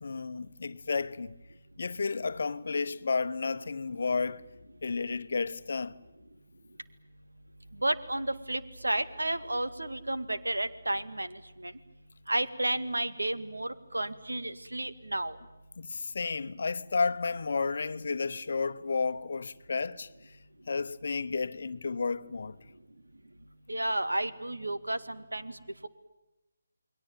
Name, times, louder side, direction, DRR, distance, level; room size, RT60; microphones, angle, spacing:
voice 1, 0.0-1.4 1.8-4.4 4.8-6.0 15.8-20.1 20.7-22.6, left 4 dB, 50° left, 1.0 m, -32 dB
voice 2, 7.8-11.3 11.6-11.7 12.3-15.4 23.7-25.5, right 1 dB, 75° right, 2.0 m, -32 dB
29.0 x 22.0 x 8.9 m
figure-of-eight pair, 150°, 0 cm